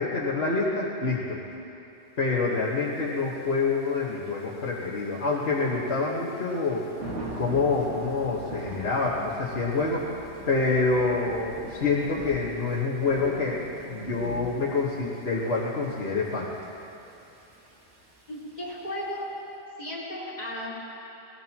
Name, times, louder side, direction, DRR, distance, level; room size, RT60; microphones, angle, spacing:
voice 1, 0.0-1.4 2.2-6.9 7.4-10.1 10.5-13.6 13.9-16.5, left 3 dB, 60° left, -7 dB, 1.6 m, -27 dB
Thunder / Rain, 2.7-19.2, right 1 dB, 90° right, 2.0 m, -44 dB
sound 1, 7.1-12.3, right 3 dB, 40° right, 2.1 m, -49 dB
voice 2, 18.3-19.3 19.8-20.9, left 1 dB, 35° left, -9 dB, 4.3 m, -35 dB
20.5 x 17.5 x 2.9 m, 2.9 s
omnidirectional pair, 1.2 m